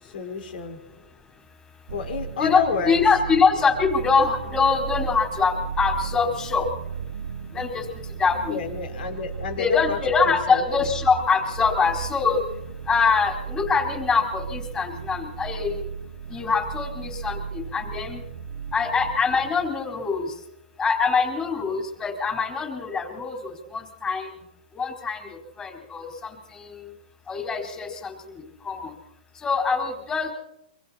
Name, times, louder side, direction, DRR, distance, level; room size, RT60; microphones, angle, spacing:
voice 1, 0.0-0.8 1.9-3.0 8.4-10.0 10.2-10.9, left 6 dB, 65° left, 5 dB, 4.9 m, -30 dB
sound 1, 1.9-19.7, right 7 dB, 80° right, 1.9 m, -35 dB
voice 2, 2.4-6.6 7.5-7.8 8.2-8.6 9.6-12.4 12.9-15.8 16.3-18.2 18.7-20.3 20.8-24.3 24.8-25.3 25.6-26.9 27.3-28.1 28.6-28.9 29.4-30.3, left 5 dB, 15° left, 3 dB, 4.3 m, -24 dB
26.5 x 25.0 x 4.3 m, 0.82 s
hypercardioid pair, 150°, 6 cm